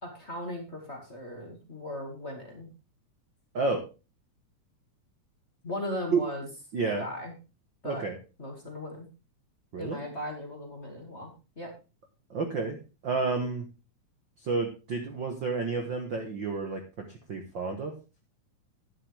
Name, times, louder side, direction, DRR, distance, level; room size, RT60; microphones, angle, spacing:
voice 1, 0.0-2.7 5.6-6.5 7.0-7.3 7.8-8.1 8.4-9.1 9.8-11.7, left 1 dB, 25° left, 1 dB, 2.1 m, -38 dB
voice 2, 6.7-7.1 7.8-8.2 9.7-10.0 12.3-12.8 13.0-13.7 14.4-17.9, right 4 dB, 50° right, 4 dB, 1.5 m, -30 dB
11.0 x 10.5 x 3.5 m, 0.30 s
omnidirectional pair, 3.5 m